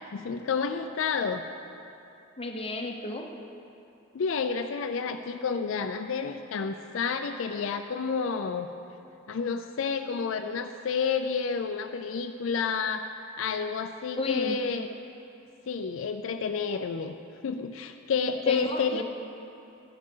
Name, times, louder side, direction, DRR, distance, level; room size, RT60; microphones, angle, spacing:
voice 1, 0.1-1.4 4.1-8.7 9.3-13.1 13.4-14.9 15.7-17.2 17.4-19.0, left 5 dB, 70° left, 7 dB, 0.4 m, -30 dB
voice 2, 2.4-3.3 14.2-14.6 18.5-19.0, left 2 dB, 30° left, 3 dB, 0.8 m, -32 dB
12.5 x 11.5 x 3.8 m, 2.7 s
head